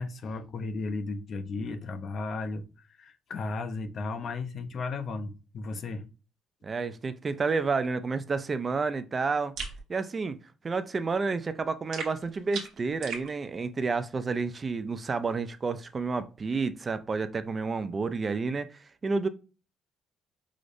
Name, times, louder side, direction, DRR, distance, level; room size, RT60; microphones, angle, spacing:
voice 1, 0.0-6.1, left 3 dB, 55° left, 0.5 m, -35 dB
voice 2, 6.6-9.5 9.9-10.4 10.6-19.3, right 4 dB, 30° right, 0.3 m, -30 dB
sound 1, 9.6-9.8 11.9-13.3, right 5 dB, 75° right, 1.0 m, -37 dB
4.9 x 2.0 x 2.5 m
cardioid pair, 100°, 0 cm